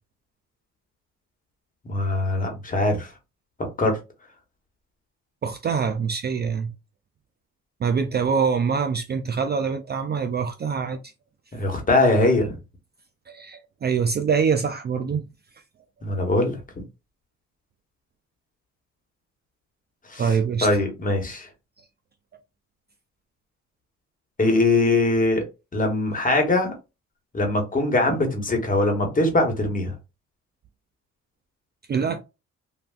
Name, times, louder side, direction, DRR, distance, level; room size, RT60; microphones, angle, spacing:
voice 1, 1.8-3.1 3.8-4.0 11.5-12.5 16.0-16.6 20.1-20.2 20.6-21.5 24.4-25.4 25.7-26.7 27.3-29.9, left 2 dB, 25° left, 1.2 m, -22 dB
voice 2, 5.4-6.7 7.8-11.1 13.3-15.3 20.2-20.7 31.9-32.2, right 6 dB, 35° right, 0.4 m, -24 dB
3.3 x 2.4 x 2.4 m
cardioid pair, 90°, 30 cm